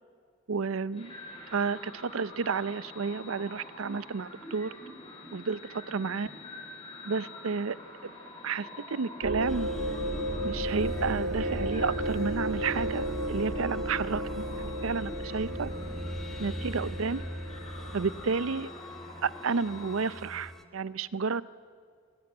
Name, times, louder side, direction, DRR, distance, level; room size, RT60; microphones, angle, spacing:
voice 1, 0.5-1.1 1.5-4.7 5.3-6.3 7.0-7.8 8.4-9.7 10.4-15.7 16.4-17.2 17.9-18.7 19.2-21.4, right 5 dB, 90° right, 17 dB, 0.6 m, -31 dB
sound 1, 0.9-20.1, left 2 dB, 30° left, 7.0 m, -47 dB
sound 2, 9.2-18.3, right 1 dB, 60° right, 2.6 m, -34 dB
sound 3, 9.5-20.6, equal, ahead, 1.1 m, -43 dB
27.0 x 18.0 x 8.6 m, 2.1 s
head